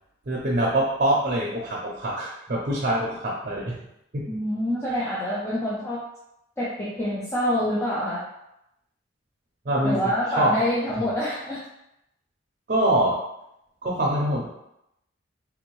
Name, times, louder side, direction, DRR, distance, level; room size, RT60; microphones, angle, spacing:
voice 1, 0.3-3.8 4.1-4.3 9.7-10.6 11.0-11.1 12.7-13.2 13.8-14.5, right 1 dB, 40° right, -4 dB, 0.5 m, -24 dB
voice 2, 4.3-6.0 6.6-8.2 9.8-11.6, equal, 10° left, -8 dB, 0.5 m, -26 dB
3.5 x 2.6 x 3.0 m, 0.83 s
head